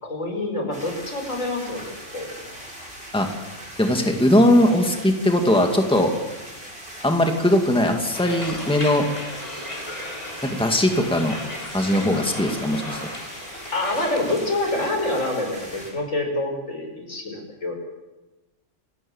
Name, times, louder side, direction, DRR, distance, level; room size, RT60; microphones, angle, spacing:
voice 1, 0.0-2.3 11.9-12.1 13.7-17.8, left 2 dB, 85° left, 3 dB, 5.7 m, -27 dB
sound 1, 0.7-15.9, right 1 dB, 50° right, 7.9 m, -40 dB
voice 2, 3.8-6.1 7.0-9.1 10.4-11.4 11.7-13.0, left 1 dB, 5° left, 3 dB, 2.3 m, -19 dB
sound 2, 8.1-14.9, left 1 dB, 30° left, 3.5 m, -36 dB
28.0 x 17.0 x 7.3 m, 1.1 s
omnidirectional pair, 1.3 m